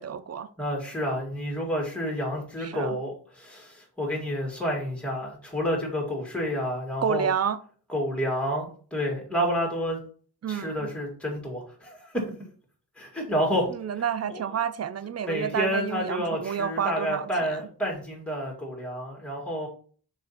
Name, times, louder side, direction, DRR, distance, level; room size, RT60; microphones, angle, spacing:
voice 1, 0.0-0.5 2.6-3.0 7.0-7.6 10.4-10.9 13.7-17.6, right 8 dB, 40° right, 0.5 m, -29 dB
voice 2, 0.6-7.3 7.9-10.0 10.5-12.1 13.0-13.7 14.3-14.4 15.2-19.7, equal, 5° left, 2.1 m, -29 dB
6.2 x 4.3 x 4.2 m
wide cardioid pair, 145°, 40 cm